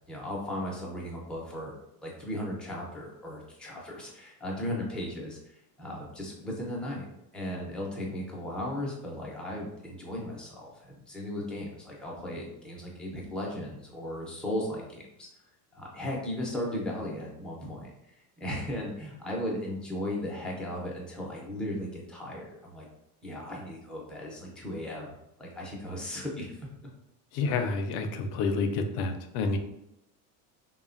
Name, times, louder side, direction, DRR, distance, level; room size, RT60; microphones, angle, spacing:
voice 1, 0.1-1.7 2.0-5.4 5.8-7.1 7.3-15.3 15.7-22.9 23.2-25.1 25.4-26.7, left 1 dB, ahead, -3 dB, 0.4 m, -36 dB
voice 2, 27.3-29.6, left 4 dB, 60° left, 7 dB, 0.5 m, -29 dB
3.1 x 2.1 x 2.4 m, 0.84 s
supercardioid pair, 125°, 46 cm